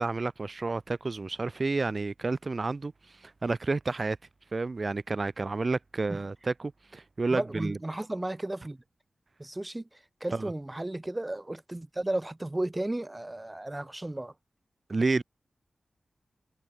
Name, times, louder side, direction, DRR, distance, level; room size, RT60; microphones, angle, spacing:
voice 1, 0.0-2.9 3.2-4.2 4.5-7.8 10.3-10.5 14.9-15.2, right 3 dB, 45° right, 4.8 m, -30 dB
voice 2, 7.3-8.8 9.4-14.3, right 1 dB, 20° right, 4.9 m, -34 dB
cardioid pair, 65°, 0 cm